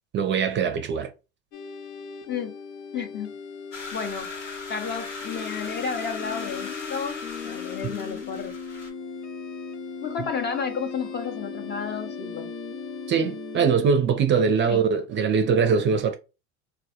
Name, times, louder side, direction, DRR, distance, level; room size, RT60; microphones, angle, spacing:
voice 1, 0.1-1.1 13.1-16.1, right 6 dB, 35° right, 0.5 m, -22 dB
sound 1, 1.5-13.7, left 5 dB, 70° left, 0.7 m, -37 dB
voice 2, 2.9-3.3 3.9-4.3 4.7-8.6 10.0-12.5 14.7-14.8, left 6 dB, 30° left, 0.6 m, -32 dB
sound 2, 3.7-8.9, left 3 dB, 85° left, 1.1 m, -39 dB
2.1 x 2.1 x 2.8 m
hypercardioid pair, 80°, 36 cm